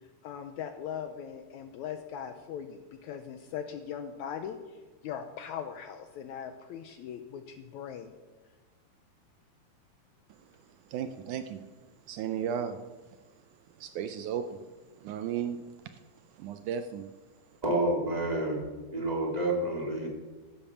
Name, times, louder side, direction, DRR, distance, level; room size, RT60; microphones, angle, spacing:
voice 1, 0.2-8.1, left 8 dB, 75° left, 8 dB, 1.8 m, -40 dB
voice 2, 10.9-11.6 12.1-12.8 13.8-14.6 15.0-15.6 16.3-17.1, right 8 dB, 75° right, 9 dB, 1.9 m, -34 dB
voice 3, 17.6-18.6 18.9-20.1, right 1 dB, 15° right, -1 dB, 2.2 m, -29 dB
15.5 x 8.9 x 7.2 m, 1.3 s
omnidirectional pair, 3.9 m